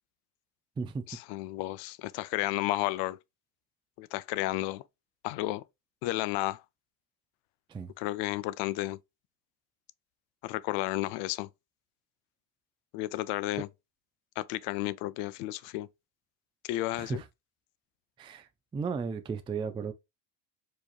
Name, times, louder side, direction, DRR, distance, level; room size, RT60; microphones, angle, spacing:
voice 1, 1.1-3.2 4.0-4.8 5.2-5.6 6.0-6.6 8.0-9.0 10.4-11.5 12.9-13.7 14.4-15.9 16.6-17.2, left 17 dB, 85° left, 0.5 m, -32 dB
voice 2, 16.9-17.2 18.2-19.9, right 5 dB, 15° right, 0.3 m, -35 dB
4.8 x 2.9 x 2.3 m
cardioid pair, 115°, 40 cm